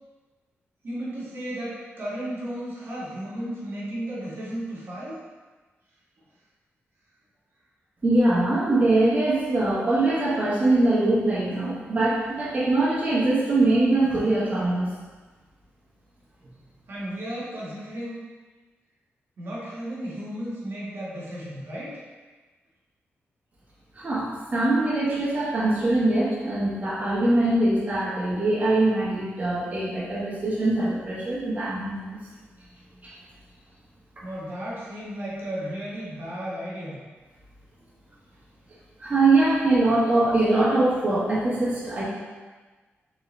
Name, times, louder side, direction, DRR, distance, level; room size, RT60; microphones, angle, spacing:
voice 1, 0.8-5.2 16.9-18.2 19.4-21.9 34.2-37.0, right 1 dB, 60° right, -7 dB, 1.4 m, -34 dB
voice 2, 8.0-14.9 23.9-32.2 39.0-42.0, right 2 dB, 30° right, -9 dB, 1.3 m, -22 dB
3.9 x 3.8 x 3.2 m, 1.3 s
cardioid pair, 90°, 4 cm